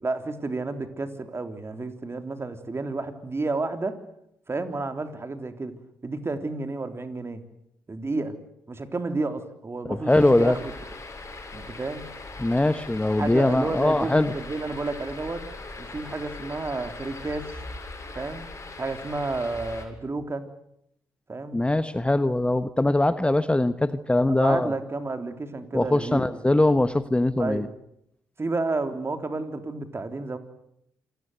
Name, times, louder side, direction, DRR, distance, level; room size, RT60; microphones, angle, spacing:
voice 1, 0.0-4.0 4.5-5.7 6.0-7.4 7.9-8.4 8.7-10.7 11.5-12.1 13.2-15.4 15.8-17.6 18.2-18.5 18.8-20.5 21.3-21.6 24.3-26.4 27.4-27.7 28.4-30.4, right 3 dB, 30° right, 8 dB, 3.7 m, -31 dB
voice 2, 9.9-10.6 12.4-14.3 21.5-24.7 25.7-27.7, left 2 dB, 15° left, 13 dB, 1.2 m, -22 dB
sound 1, 10.1-19.9, left 3 dB, 35° left, 7.5 m, -40 dB
27.5 x 21.0 x 8.1 m, 0.76 s
hypercardioid pair, 45°, 8 cm